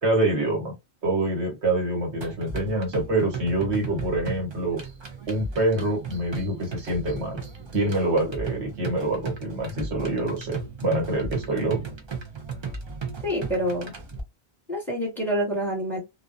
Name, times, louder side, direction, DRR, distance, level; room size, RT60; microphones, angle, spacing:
voice 1, 0.0-0.7 1.0-4.8 5.3-7.4 7.7-11.8, right 2 dB, 85° right, 1.4 m, -26 dB
sound 1, 2.2-14.2, right 4 dB, 40° right, 0.4 m, -36 dB
voice 2, 13.2-13.9 14.7-16.0, equal, ahead, 1.0 m, -27 dB
2.4 x 2.2 x 2.4 m
omnidirectional pair, 1.1 m